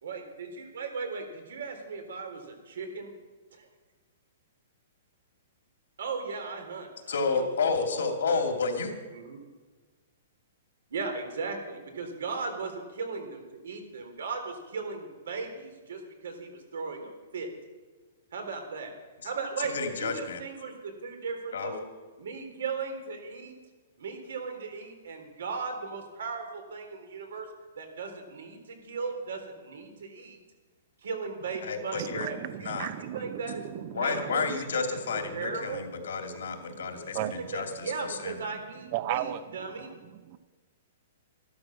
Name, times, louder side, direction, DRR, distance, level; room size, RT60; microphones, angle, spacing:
voice 1, 0.0-3.1 3.6-3.7 6.0-8.4 9.1-9.4 10.9-17.5 18.3-18.9 19.2-21.7 22.2-23.5 24.0-27.5 27.8-30.4 31.0-32.7 33.0-34.5 34.7-35.8 37.1-39.9, right 4 dB, 80° right, 5 dB, 3.6 m, -37 dB
voice 2, 7.1-8.9 19.7-20.4 21.5-21.8 31.6-32.9 33.9-38.3, left 4 dB, 90° left, 4 dB, 2.7 m, -31 dB
voice 3, 31.9-34.6 36.7-37.4 38.5-38.6 38.9-39.4 40.1-40.4, right 12 dB, 30° right, 13 dB, 0.6 m, -36 dB
14.0 x 12.5 x 6.4 m, 1.3 s
hypercardioid pair, 175°, 0 cm